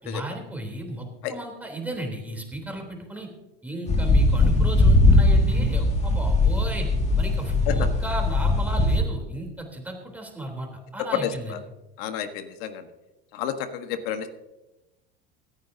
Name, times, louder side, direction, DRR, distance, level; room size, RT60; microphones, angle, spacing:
voice 1, 0.0-3.3 3.6-6.9 7.2-11.6, right 1 dB, 5° right, 2 dB, 3.6 m, -35 dB
sound 1, 3.9-9.0, left 2 dB, 20° left, 2.2 m, -20 dB
voice 2, 11.1-11.6 12.0-12.9 13.3-14.3, left 9 dB, 70° left, 8 dB, 1.5 m, -30 dB
25.0 x 9.4 x 2.8 m, 1.0 s
supercardioid pair, 105°, 31 cm